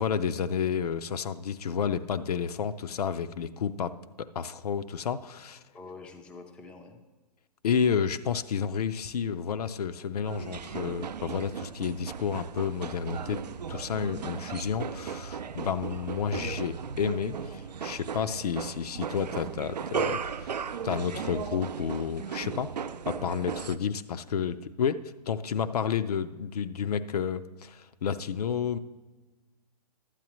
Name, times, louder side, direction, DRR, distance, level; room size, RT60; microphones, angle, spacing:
voice 1, 0.0-5.6 7.6-20.6 20.8-22.7 23.1-28.8, left 7 dB, 65° left, 11 dB, 0.5 m, -31 dB
voice 2, 5.7-7.0 23.8-23.9, left 3 dB, 5° left, 4 dB, 0.4 m, -46 dB
sound 1, 10.3-23.8, right 7 dB, 85° right, 0.4 m, -36 dB
11.5 x 8.3 x 3.0 m, 1.2 s
hypercardioid pair, 130°, 21 cm